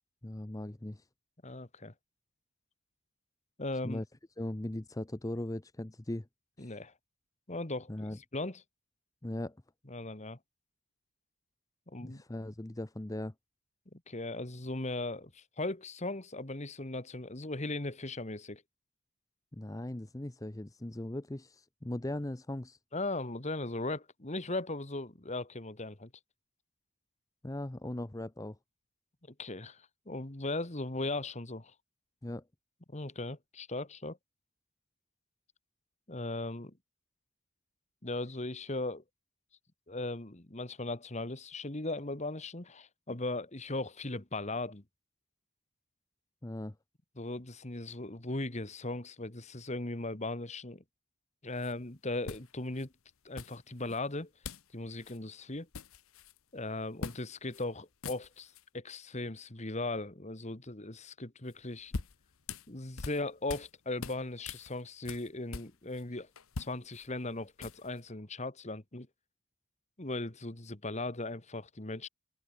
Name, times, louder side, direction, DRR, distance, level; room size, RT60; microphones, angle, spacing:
voice 1, 0.2-1.1 3.8-4.0 4.4-6.3 6.6-6.8 7.9-8.2 9.2-9.6 12.0-13.3 19.5-22.8 27.4-28.6 32.2-32.4 46.4-46.8, left 1 dB, 15° left, 0.7 m, -39 dB
voice 2, 1.4-1.9 3.6-4.0 6.6-6.9 7.5-7.9 8.3-8.6 9.9-10.4 11.9-12.2 13.9-18.6 22.9-26.1 29.4-31.7 32.9-34.2 36.1-36.7 38.0-39.0 39.9-44.8 47.2-50.8 51.4-52.9 53.3-54.3 54.7-55.7 56.5-61.9 62.7-66.3 66.6-69.1 70.0-72.1, left 2 dB, 30° left, 1.8 m, -38 dB
sound 1, 51.6-51.7 52.2-52.9 53.4-54.0 54.4-54.7 55.0-55.2 55.5-56.4 57.0-57.2 57.5-57.6 57.9-58.6 61.5-63.7 64.0-66.0 66.4-68.0, left 4 dB, 75° left, 1.1 m, -43 dB
head